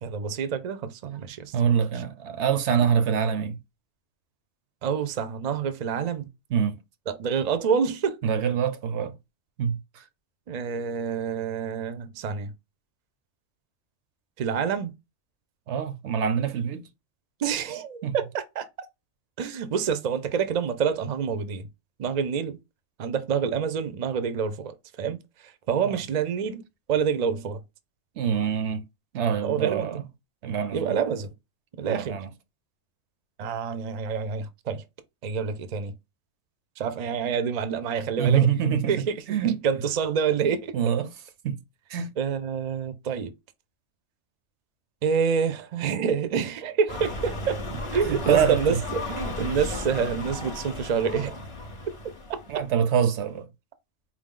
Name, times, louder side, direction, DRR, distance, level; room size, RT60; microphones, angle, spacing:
voice 1, 0.0-1.5 4.8-6.3 7.1-8.2 10.5-12.5 14.4-14.9 17.4-18.7 19.4-21.7 22.0-22.6 23.0-25.2 25.7-26.6 26.9-27.6 29.4-30.0 30.7-31.3 31.8-32.2 33.4-34.8 35.2-35.9 36.8-38.5 38.9-40.8 42.2-43.3 45.0-47.6 47.9-51.3 52.3-52.4, right 6 dB, 50° right, 0.5 m, -27 dB
voice 2, 1.5-3.6 6.5-6.8 8.2-9.2 9.6-10.0 15.7-16.8 18.0-18.2 25.8-26.0 28.2-28.8 29.1-30.0 30.4-30.9 31.9-32.3 38.2-39.6 40.7-41.1 41.4-41.6 41.9-42.1 48.0-48.8 52.5-53.5, right 7 dB, 75° right, 0.9 m, -25 dB
sound 1, 46.9-53.0, left 2 dB, 35° left, 0.7 m, -34 dB
4.6 x 2.0 x 3.7 m
omnidirectional pair, 1.2 m